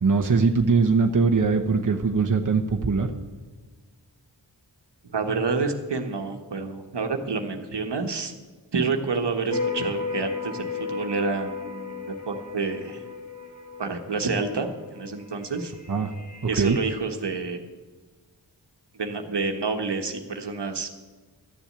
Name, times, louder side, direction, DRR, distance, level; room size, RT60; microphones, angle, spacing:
voice 1, 0.0-3.1 15.9-16.1 16.5-16.8, right 4 dB, 45° right, 4 dB, 1.1 m, -21 dB
voice 2, 5.1-8.3 8.7-13.0 13.8-15.7 16.5-17.6 18.9-20.9, right 4 dB, 65° right, 5 dB, 1.5 m, -28 dB
sound 1, 9.5-17.0, left 4 dB, 40° left, 2.1 m, -35 dB
13.5 x 7.1 x 8.6 m, 1.3 s
cardioid pair, 45°, 44 cm